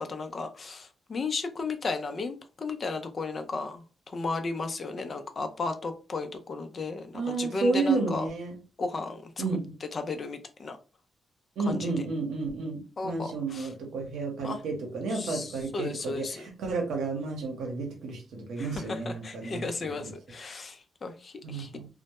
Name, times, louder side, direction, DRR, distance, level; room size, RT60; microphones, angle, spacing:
voice 1, 0.0-8.3 8.8-9.4 9.8-10.8 11.6-11.9 13.0-13.7 14.4-14.6 15.1-16.5 18.6-21.7, left 3 dB, 50° left, 7 dB, 0.4 m, -35 dB
voice 2, 7.1-8.5 9.4-9.6 11.6-20.1 21.4-21.9, right 3 dB, 80° right, 2 dB, 0.7 m, -31 dB
2.1 x 2.0 x 2.9 m, 0.34 s
supercardioid pair, 55°, 0 cm